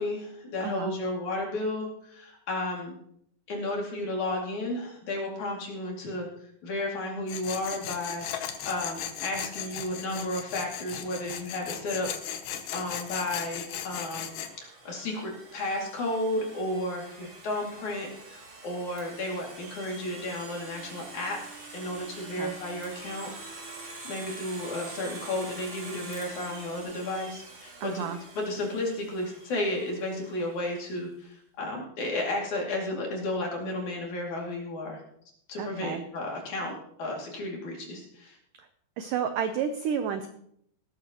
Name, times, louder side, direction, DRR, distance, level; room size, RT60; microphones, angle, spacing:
voice 1, 0.0-2.9 3.5-6.3 6.6-12.3 12.7-14.3 14.6-23.3 24.0-28.1 28.3-35.0 35.5-36.7 37.0-38.4, left 1 dB, 50° left, -1 dB, 3.7 m, -33 dB
voice 2, 0.6-0.9 22.3-22.6 27.8-28.2 35.6-36.0 39.0-40.3, right 8 dB, 80° right, 8 dB, 1.9 m, -31 dB
Tools, 7.3-14.5, left 9 dB, 70° left, 2.2 m, -37 dB
Domestic sounds home sounds, 13.7-30.5, right 3 dB, 35° right, 2.4 m, -45 dB
18.0 x 13.0 x 3.0 m, 0.69 s
omnidirectional pair, 4.7 m